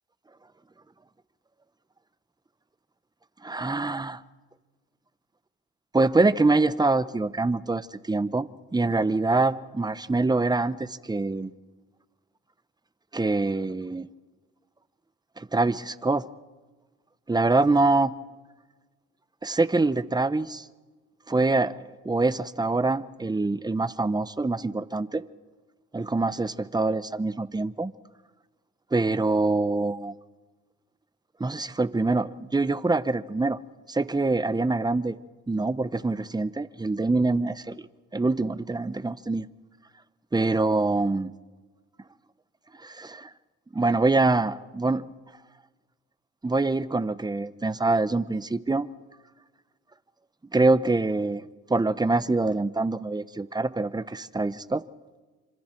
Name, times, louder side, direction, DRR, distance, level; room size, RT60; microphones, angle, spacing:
voice 1, 3.4-4.2 5.9-8.5 8.7-11.5 13.1-14.1 15.4-16.2 17.3-18.1 19.4-20.6 21.3-21.8 22.0-25.2 25.9-27.9 28.9-30.1 31.4-33.6 33.9-35.1 35.5-37.8 38.1-39.5 40.3-41.3 42.8-43.3 43.7-45.1 46.4-48.9 50.5-51.4 51.7-54.8, right 3 dB, 15° right, 0.9 m, -25 dB
28.0 x 26.0 x 4.5 m
cardioid pair, 90°, 30 cm